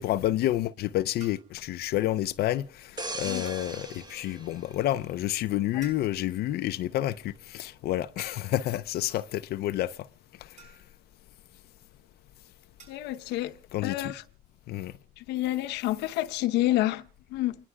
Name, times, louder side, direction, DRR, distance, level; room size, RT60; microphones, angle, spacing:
voice 1, 0.0-2.9 3.2-9.9 13.7-14.1 14.7-14.9, left 14 dB, 70° left, 0.5 m, -29 dB
sound 1, 1.2-1.6 3.5-3.8 5.8-6.4 8.2-8.7 10.6-11.1 12.8-13.1, right 5 dB, 45° right, 5.5 m, -53 dB
sound 2, 3.0-5.7 6.1-6.3, right 2 dB, 25° right, 1.3 m, -40 dB
voice 2, 12.9-13.5 13.8-14.2 15.2-17.6, left 15 dB, 90° left, 0.9 m, -29 dB
29.0 x 11.0 x 2.3 m
cardioid pair, 110°, 17 cm